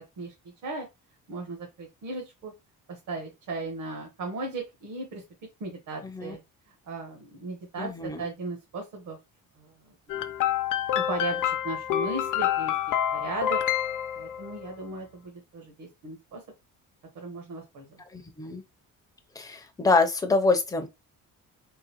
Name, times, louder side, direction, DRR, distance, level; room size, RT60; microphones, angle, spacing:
voice 1, 1.3-2.5 2.9-5.2 5.6-6.4 6.8-9.2 9.6-10.3 10.9-12.7 13.1-13.6 14.1-16.4 17.1-18.0, right 3 dB, 60° right, 1.2 m, -37 dB
voice 2, 6.0-6.4 7.8-8.3 18.1-18.6 19.4-20.9, left 3 dB, 10° left, 0.5 m, -26 dB
sound 1, 10.1-14.7, left 11 dB, 65° left, 0.6 m, -28 dB
3.9 x 3.8 x 2.9 m
cardioid pair, 175°, 34 cm